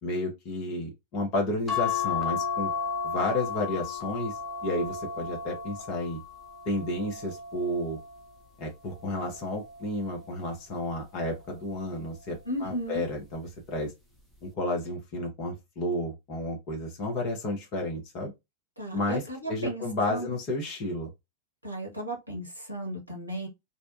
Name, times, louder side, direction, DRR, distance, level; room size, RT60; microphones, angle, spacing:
voice 1, 0.0-2.7 3.0-6.2 6.7-8.0 8.6-13.9 14.4-18.3 18.9-21.1, left 1 dB, 40° left, 0.8 m, -32 dB
sound 1, 1.7-8.3 8.9-10.3 11.6-12.0 12.3-12.4, left 6 dB, ahead, 0.7 m, -34 dB
voice 2, 12.4-13.0 18.8-20.3 21.6-23.5, right 1 dB, 90° left, 1.0 m, -35 dB
2.7 x 2.1 x 2.5 m
figure-of-eight pair, 90°, 0 cm